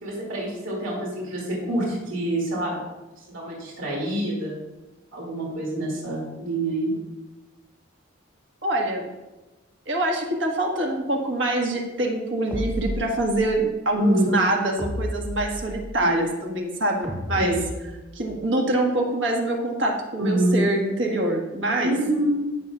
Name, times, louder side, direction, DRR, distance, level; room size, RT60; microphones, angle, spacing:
voice 1, 0.0-2.8 3.3-4.6 5.1-6.9 14.0-14.3 16.0-16.3 17.4-17.6 20.2-20.6 21.8-22.4, right 1 dB, 80° right, -3 dB, 2.5 m, -26 dB
voice 2, 8.6-9.1 9.9-17.5 18.1-21.9, right 1 dB, 60° right, 1 dB, 1.6 m, -25 dB
sound 1, 12.5-13.6 14.8-16.0 17.0-18.3, equal, 20° right, 1.5 m, -33 dB
14.5 x 6.9 x 2.4 m, 1.1 s
head